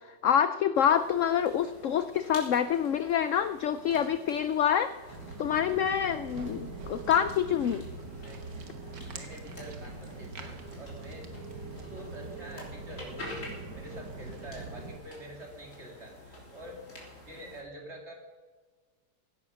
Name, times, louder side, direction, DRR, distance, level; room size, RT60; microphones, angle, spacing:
voice 1, 0.0-4.9 5.4-7.8, left 9 dB, 70° left, 12 dB, 0.7 m, -26 dB
sound 1, 0.7-17.6, left 1 dB, 45° left, 3.8 m, -49 dB
Walk footsteps, 5.1-15.0, right 3 dB, 80° right, 2.0 m, -43 dB
voice 2, 9.1-11.3 11.9-16.8 17.1-18.1, equal, 40° right, 0 dB, 3.1 m, -46 dB
16.5 x 10.5 x 6.4 m, 1.4 s
omnidirectional pair, 1.8 m